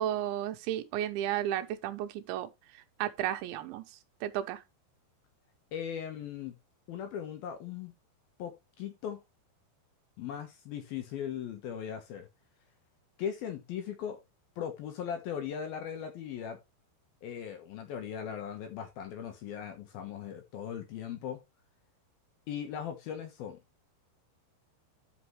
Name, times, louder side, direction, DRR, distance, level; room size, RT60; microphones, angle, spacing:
voice 1, 0.0-2.5 3.0-3.9 4.2-4.6, right 11 dB, 85° right, 3.1 m, -33 dB
voice 2, 5.7-6.6 6.9-7.9 8.4-9.2 10.2-12.3 13.2-14.2 14.6-16.6 17.2-21.4 22.5-23.6, left 8 dB, 65° left, 2.6 m, -38 dB
11.0 x 6.0 x 3.1 m
omnidirectional pair, 5.3 m